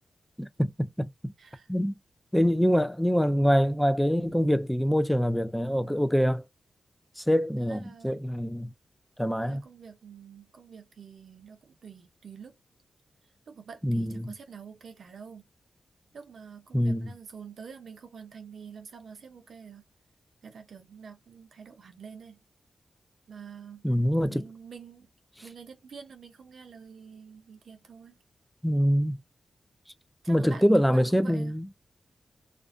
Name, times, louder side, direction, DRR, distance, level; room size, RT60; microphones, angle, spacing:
voice 1, 0.4-1.3 1.7-2.0 2.3-6.4 7.2-8.7 9.2-9.6 13.8-14.3 16.7-17.1 23.8-24.5 28.6-29.2 30.3-31.7, equal, 5° left, 0.3 m, -25 dB
voice 2, 7.6-8.2 9.4-12.6 13.5-15.4 16.1-19.9 20.4-22.4 23.3-23.8 24.3-25.1 25.4-28.2 30.2-31.5, right 6 dB, 75° right, 0.6 m, -47 dB
2.5 x 2.2 x 2.4 m
wide cardioid pair, 110°, 0 cm